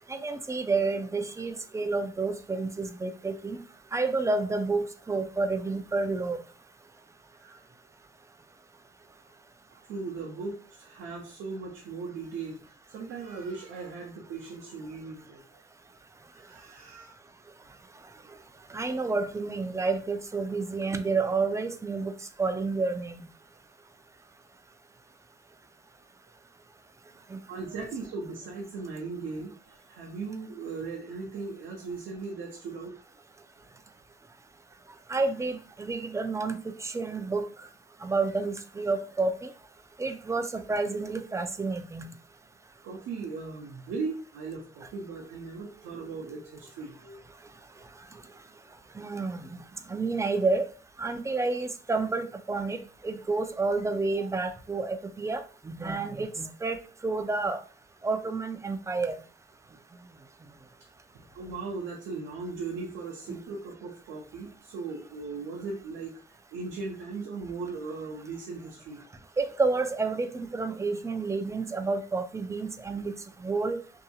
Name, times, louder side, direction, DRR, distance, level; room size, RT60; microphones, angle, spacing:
voice 1, 0.1-3.6 3.9-6.4 18.7-22.1 22.4-23.2 27.3-27.4 35.1-37.5 38.0-39.5 40.0-42.1 49.0-49.4 49.9-50.7 51.0-57.6 58.0-59.2 69.4-73.1 73.4-73.8, right 3 dB, 15° right, 9 dB, 0.3 m, -29 dB
voice 2, 7.3-7.7 9.7-12.6 12.9-15.4 16.3-17.2 18.0-18.1 27.2-33.0 42.8-47.2 54.2-54.3 61.1-66.1 66.5-69.0, right 4 dB, 80° right, -1 dB, 0.6 m, -38 dB
2.7 x 2.6 x 2.3 m, 0.38 s
cardioid pair, 90°, 20 cm